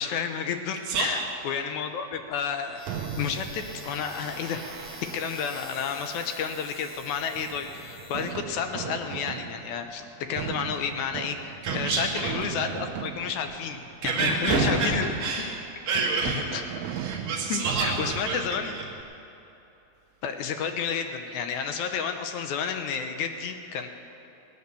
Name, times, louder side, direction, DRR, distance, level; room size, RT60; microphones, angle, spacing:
voice 1, 0.0-2.8 3.2-4.6 5.1-10.0 10.3-15.1 16.5-16.6 17.5-18.7 20.2-23.9, left 7 dB, 80° left, 6 dB, 1.7 m, -31 dB
voice 2, 0.9-1.3 11.6-12.3 14.0-16.4 16.8-18.8 21.3-21.4, right 3 dB, 45° right, -4 dB, 1.2 m, -28 dB
sound 1, 2.3-8.3, left 3 dB, 55° left, 2.9 m, -46 dB
Fireworks, 2.9-19.0, right 9 dB, 90° right, 1.6 m, -38 dB
18.5 x 9.6 x 6.9 m, 2.9 s
omnidirectional pair, 4.4 m